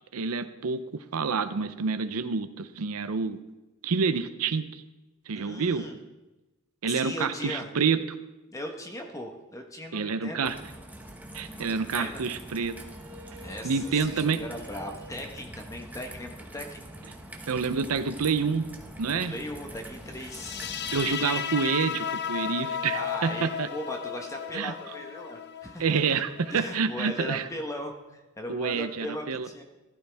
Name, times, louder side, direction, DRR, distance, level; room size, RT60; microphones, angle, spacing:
voice 1, 0.1-3.4 3.8-4.8 5.3-5.9 6.8-8.0 9.9-10.6 11.3-12.7 13.6-14.4 17.5-18.7 19.0-19.3 20.9-23.7 24.5-24.7 25.8-27.5 28.5-29.5, right 5 dB, 80° right, 11 dB, 0.6 m, -28 dB
voice 2, 5.3-6.0 6.8-7.7 8.5-10.5 11.5-12.3 13.4-16.8 19.1-20.6 22.9-26.1 26.5-29.6, left 1 dB, 15° left, 3 dB, 1.1 m, -38 dB
Raindrop / Trickle dribble, 10.4-21.2, right 1 dB, 5° right, 1.0 m, -44 dB
sound 1, 12.6-18.7 21.9-28.0, right 3 dB, 60° right, 1.0 m, -51 dB
sound 2, 20.2-27.3, left 9 dB, 50° left, 0.6 m, -35 dB
15.5 x 12.5 x 3.5 m, 1.1 s
head